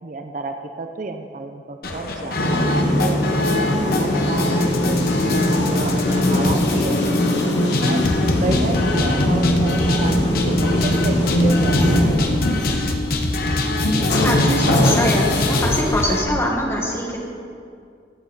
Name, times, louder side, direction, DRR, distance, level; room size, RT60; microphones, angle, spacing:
voice 1, 0.0-7.0 7.6-8.1 8.4-12.3, right 3 dB, 45° right, 5 dB, 0.5 m, -31 dB
sound 1, 1.8-16.2, left 2 dB, 55° left, 0.9 m, -25 dB
sound 2, 2.4-15.8, left 1 dB, 85° left, 1.2 m, -20 dB
voice 2, 14.2-17.2, left 1 dB, 15° left, -2 dB, 1.5 m, -23 dB
15.0 x 8.6 x 4.0 m, 2.3 s
head